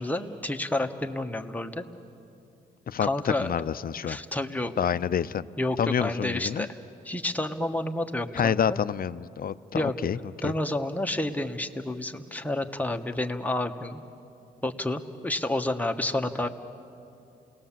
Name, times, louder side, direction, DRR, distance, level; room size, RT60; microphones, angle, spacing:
voice 1, 0.0-1.8 3.0-3.5 4.1-4.7 5.6-6.7 7.0-8.8 9.7-9.9 10.4-14.0 14.6-16.5, left 1 dB, 10° left, 4 dB, 1.4 m, -30 dB
voice 2, 2.9-4.2 4.8-5.5 5.8-6.7 8.3-10.5, left 8 dB, 50° left, 16 dB, 0.6 m, -28 dB
28.5 x 19.0 x 7.5 m, 2.6 s
cardioid pair, 65°, 19 cm